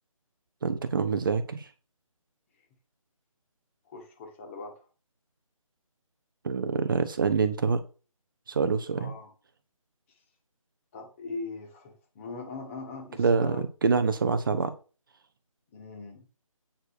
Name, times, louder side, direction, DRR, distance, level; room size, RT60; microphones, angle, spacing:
voice 1, 0.6-1.7 6.4-7.8 8.5-9.1 13.2-13.6 13.8-14.7, right 5 dB, 40° right, 10 dB, 0.8 m, -25 dB
voice 2, 3.9-4.9 9.0-9.3 10.9-13.6 14.3-14.4 15.7-16.3, left 3 dB, 25° left, 4 dB, 1.9 m, -40 dB
8.7 x 4.7 x 6.2 m, 0.35 s
figure-of-eight pair, 155°, 18 cm